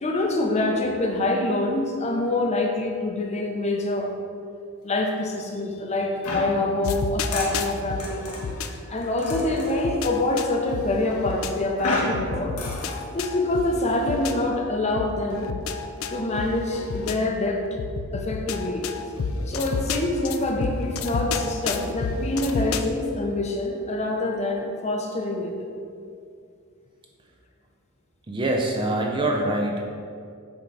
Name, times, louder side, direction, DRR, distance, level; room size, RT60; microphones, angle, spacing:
voice 1, 0.0-4.1 4.8-8.2 8.9-12.6 13.1-15.5 16.1-17.6 18.1-18.9 19.5-25.5, left 2 dB, 30° left, 2 dB, 0.7 m, -25 dB
sound 1, 6.2-9.8 11.8-13.0, left 2 dB, 85° left, 1.3 m, -33 dB
sound 2, 6.8-8.7 9.3-11.5 12.1-14.3 15.0-17.2 17.8-22.8, left 4 dB, 65° left, 0.4 m, -31 dB
voice 2, 28.3-29.8, right 1 dB, 20° right, 1 dB, 0.5 m, -24 dB
6.9 x 3.9 x 4.6 m, 2.3 s
head